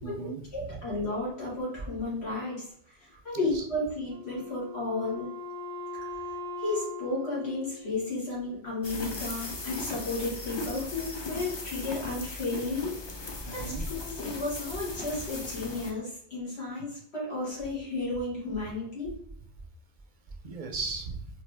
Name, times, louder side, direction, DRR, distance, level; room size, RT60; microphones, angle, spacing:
voice 1, 0.0-0.8 3.3-3.7 13.4-13.8 20.4-21.3, right 4 dB, 55° right, 5 dB, 0.6 m, -37 dB
voice 2, 0.5-5.3 6.6-13.0 13.5-19.2, left 2 dB, 80° left, -6 dB, 2.2 m, -33 dB
Wind instrument woodwind instrument, 4.1-8.6, left 2 dB, 85° right, 0.9 m, -40 dB
sound 1, 8.8-15.9, left 2 dB, 35° left, 0.5 m, -38 dB
4.1 x 2.9 x 3.3 m, 0.68 s
omnidirectional pair, 1.1 m